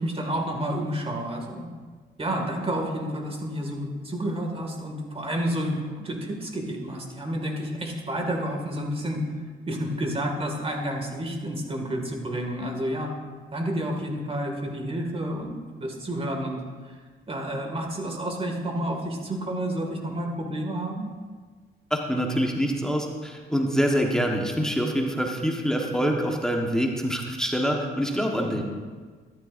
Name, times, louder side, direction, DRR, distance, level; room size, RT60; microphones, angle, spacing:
voice 1, 0.0-1.7 2.2-9.2 9.7-13.1 13.5-17.0 17.3-21.1, right 1 dB, 30° right, 2 dB, 2.2 m, -30 dB
voice 2, 21.9-28.6, equal, 5° left, 0 dB, 1.4 m, -25 dB
13.5 x 11.5 x 2.6 m, 1.5 s
cardioid pair, 90°, 20 cm